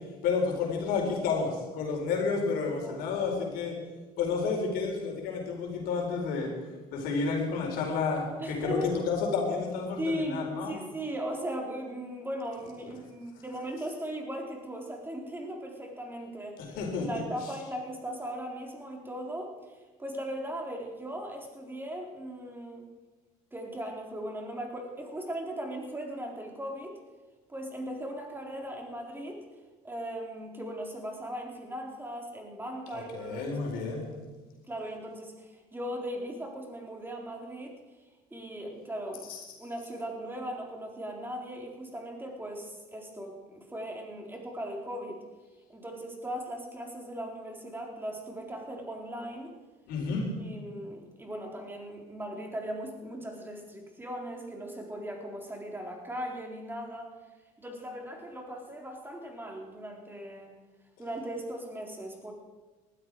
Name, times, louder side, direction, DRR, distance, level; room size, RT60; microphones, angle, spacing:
voice 1, 0.2-3.7 4.2-6.5 6.9-10.7 16.8-17.1 32.9-34.1 39.3-39.4 49.9-50.2, left 4 dB, 75° left, 1 dB, 4.3 m, -30 dB
voice 2, 8.4-8.9 10.0-22.9 23.5-27.0 27.5-29.4 29.8-33.8 34.7-37.7 38.3-39.3 39.6-45.2 45.7-49.5 50.4-57.1 57.6-60.5 61.0-62.3, right 1 dB, 15° right, 1 dB, 4.0 m, -38 dB
19.0 x 13.0 x 4.8 m, 1.2 s
supercardioid pair, 85°, 16 cm